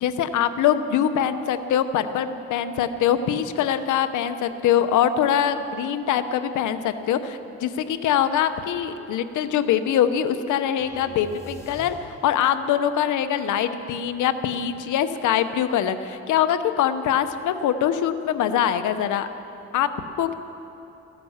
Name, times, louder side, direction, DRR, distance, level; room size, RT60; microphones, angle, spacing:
voice 1, 0.0-12.0 12.2-19.3 19.7-19.9 20.2-20.3, left 9 dB, 80° left, 11 dB, 0.8 m, -23 dB
sound 1, 10.8-12.5, equal, 10° left, 4.1 m, -42 dB
15.5 x 10.5 x 7.2 m, 2.9 s
cardioid pair, 90°, 30 cm